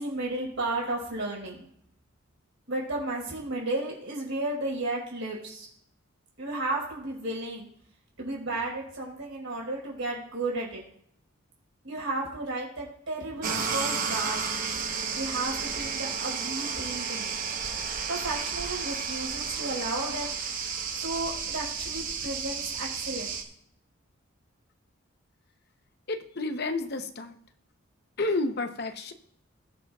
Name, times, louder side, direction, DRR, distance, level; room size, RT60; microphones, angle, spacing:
voice 1, 0.0-1.6 2.7-5.7 6.4-7.7 8.2-10.8 11.8-14.4 15.2-17.4 18.1-20.6 21.0-23.3, right 2 dB, 65° right, -3 dB, 4.7 m, -33 dB
sound 1, 13.4-23.4, right 5 dB, 40° right, 1.0 m, -32 dB
voice 2, 26.1-27.4 28.2-29.1, left 2 dB, 50° left, 7 dB, 0.8 m, -30 dB
20.0 x 7.1 x 2.4 m, 0.69 s
head